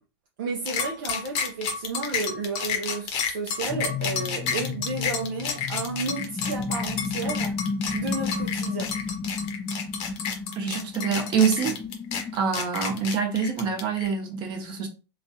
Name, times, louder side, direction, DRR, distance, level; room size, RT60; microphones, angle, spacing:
voice 1, 0.4-7.6 7.9-9.0, right 4 dB, 50° right, 0.6 m, -32 dB
sound 1, 0.7-14.1, left 6 dB, 40° left, 0.9 m, -30 dB
sound 2, 3.7-12.3, left 4 dB, 10° left, 0.3 m, -33 dB
voice 2, 10.6-11.8 12.3-14.9, right 6 dB, 35° right, 1.0 m, -25 dB
4.1 x 2.3 x 2.7 m
figure-of-eight pair, 95°, 14 cm